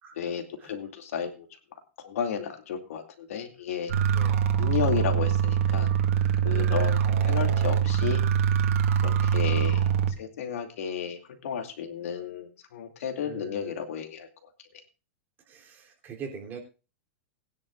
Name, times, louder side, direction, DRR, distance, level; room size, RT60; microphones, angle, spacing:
voice 1, 0.2-3.9 4.6-5.9 6.4-8.2 9.0-9.8 10.2-14.5, left 7 dB, 80° left, 5 dB, 2.4 m, -33 dB
sound 1, 3.9-10.1, right 8 dB, 80° right, 1.7 m, -24 dB
voice 2, 13.2-13.7 15.4-16.6, right 6 dB, 25° right, 0 dB, 3.3 m, -42 dB
20.0 x 10.5 x 2.5 m, 0.32 s
supercardioid pair, 155°, 7 cm